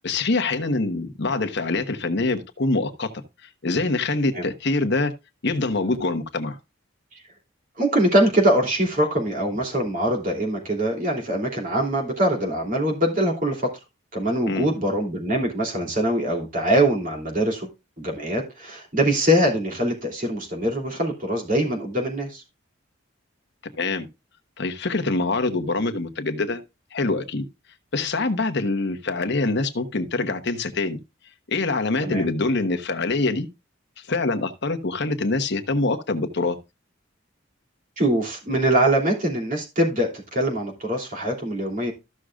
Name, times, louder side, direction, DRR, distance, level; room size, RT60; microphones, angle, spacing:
voice 1, 0.0-3.2 3.6-5.1 5.4-6.6 14.5-14.7 23.8-24.1 24.6-26.6 26.9-27.4 27.9-31.0 31.5-33.5 34.1-36.6, left 3 dB, 55° left, 1.1 m, -24 dB
voice 2, 7.8-13.7 14.1-17.7 18.0-22.4 32.0-32.2 38.0-41.9, right 1 dB, 40° right, 3.1 m, -23 dB
14.5 x 6.4 x 2.4 m
head